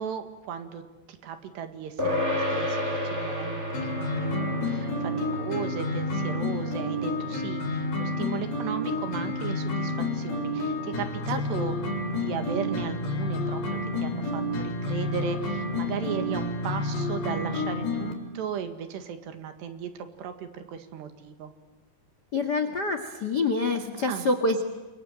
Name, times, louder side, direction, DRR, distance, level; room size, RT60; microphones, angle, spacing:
voice 1, 0.0-11.8 12.1-21.5 24.1-24.3, right 8 dB, 70° right, 8 dB, 3.9 m, -36 dB
sound 1, 2.0-11.7, equal, 15° right, 4.6 m, -34 dB
sound 2, 3.7-18.1, left 2 dB, 55° left, 5.3 m, -30 dB
voice 2, 22.3-24.7, left 3 dB, 80° left, 8 dB, 0.9 m, -26 dB
28.5 x 23.0 x 9.0 m, 1.2 s
omnidirectional pair, 5.3 m